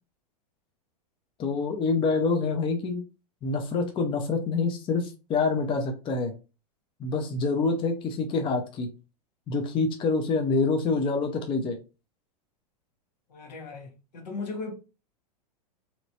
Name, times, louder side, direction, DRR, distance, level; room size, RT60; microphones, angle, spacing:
voice 1, 1.4-3.0 3.4-6.3 7.0-8.9 9.5-11.8, left 4 dB, 25° left, 0.6 m, -26 dB
voice 2, 13.3-14.7, left 4 dB, 80° left, 1.4 m, -37 dB
3.0 x 2.9 x 2.8 m
hypercardioid pair, 120°, 21 cm